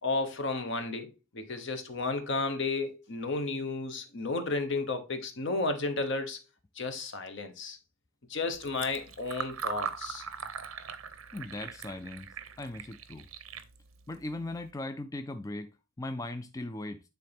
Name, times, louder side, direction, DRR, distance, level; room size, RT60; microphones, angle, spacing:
voice 1, 0.0-6.4 6.8-7.8 8.3-10.2, left 3 dB, 60° left, 1.1 m, -33 dB
Fill (with liquid), 8.5-14.7, right 6 dB, 90° right, 0.8 m, -41 dB
voice 2, 11.3-12.3 12.6-13.3 14.1-15.7 16.0-17.0, left 2 dB, 15° left, 0.3 m, -38 dB
9.4 x 4.0 x 3.5 m
head